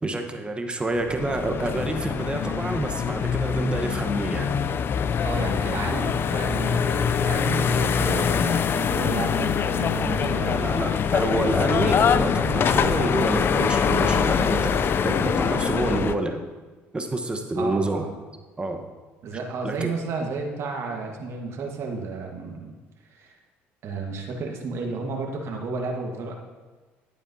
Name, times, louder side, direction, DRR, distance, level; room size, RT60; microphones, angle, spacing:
voice 1, 0.0-4.5 10.4-16.4 16.9-18.1 18.6-18.8 19.6-19.9, right 2 dB, 20° right, 4 dB, 1.2 m, -28 dB
sound 1, 1.0-16.1, left 7 dB, 45° left, 0.5 m, -24 dB
voice 2, 5.2-10.7 17.5-18.2 19.2-22.7 23.0-23.4 23.8-26.3, right 4 dB, 60° right, 1 dB, 1.5 m, -32 dB
10.5 x 8.7 x 2.8 m, 1.3 s
supercardioid pair, 75°, 5 cm